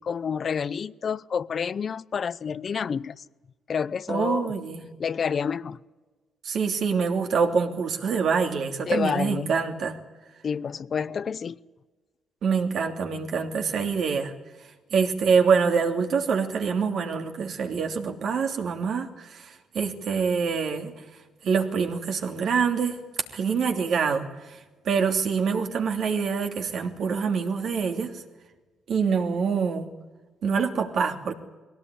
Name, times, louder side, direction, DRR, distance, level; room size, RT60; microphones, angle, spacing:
voice 1, 0.0-3.2 3.7-4.5 5.0-5.8 8.9-9.5 10.4-11.6, left 6 dB, 50° left, 16 dB, 0.7 m, -29 dB
voice 2, 4.1-4.8 6.4-10.0 12.4-14.3 14.9-20.9 21.4-23.0 23.3-24.3 24.8-28.1 28.9-29.9 30.4-31.3, right 5 dB, 65° right, 4 dB, 3.0 m, -25 dB
21.0 x 17.5 x 9.9 m, 1.3 s
cardioid pair, 90°, 0 cm